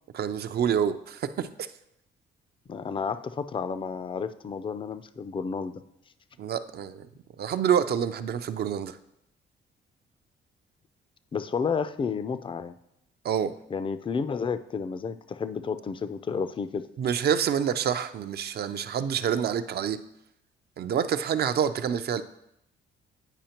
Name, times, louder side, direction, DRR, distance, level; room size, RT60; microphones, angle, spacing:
voice 1, 0.1-1.7 6.4-7.1 7.4-9.0 13.2-13.5 17.0-20.0 20.8-22.2, right 8 dB, 55° right, 11 dB, 0.4 m, -27 dB
voice 2, 2.7-5.8 11.3-12.8 13.7-16.9, left 5 dB, 25° left, 13 dB, 0.4 m, -31 dB
9.0 x 4.9 x 2.9 m, 0.80 s
cardioid pair, 90°, 20 cm